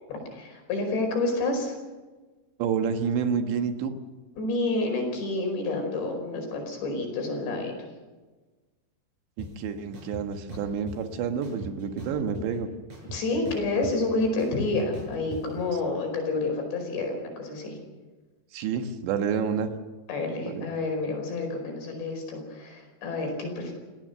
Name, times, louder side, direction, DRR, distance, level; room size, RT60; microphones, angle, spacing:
voice 1, 0.1-1.8 4.4-7.9 13.1-17.8 20.1-23.7, left 2 dB, 75° left, 3 dB, 7.1 m, -29 dB
voice 2, 2.6-3.9 9.4-12.7 18.5-19.7 20.5-20.7, right 6 dB, 80° right, 6 dB, 3.7 m, -29 dB
sound 1, 9.4-9.5 9.9-11.0 11.4-12.6 12.9-15.4, right 1 dB, 40° right, 7.1 m, -39 dB
27.5 x 17.0 x 6.7 m, 1.3 s
omnidirectional pair, 5.1 m